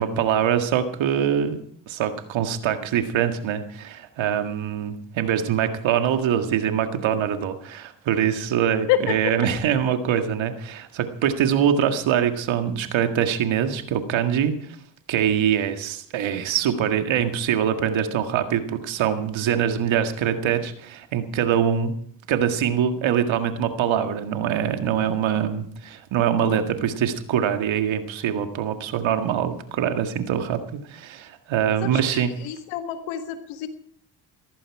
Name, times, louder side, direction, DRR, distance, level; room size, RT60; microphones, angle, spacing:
voice 1, 0.0-1.6 1.9-14.8 15.1-21.9 22.3-32.3, right 9 dB, 70° right, 7 dB, 1.9 m, -24 dB
voice 2, 8.9-9.3 31.8-33.7, left 11 dB, 85° left, 9 dB, 1.6 m, -27 dB
16.0 x 14.5 x 4.8 m, 0.63 s
hypercardioid pair, 50°, 48 cm